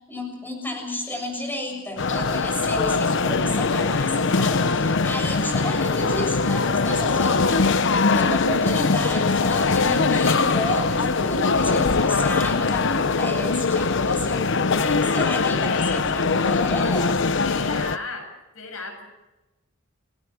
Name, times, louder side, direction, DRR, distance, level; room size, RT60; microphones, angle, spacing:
voice 1, 0.1-7.6 7.8-17.1, left 1 dB, 10° left, 3 dB, 7.0 m, -31 dB
sound 1, 2.0-18.0, left 4 dB, 60° left, 0.9 m, -22 dB
voice 2, 15.6-16.2 17.4-18.3 18.5-19.1, left 3 dB, 80° left, 4 dB, 7.9 m, -34 dB
29.5 x 20.0 x 6.3 m, 1.1 s
head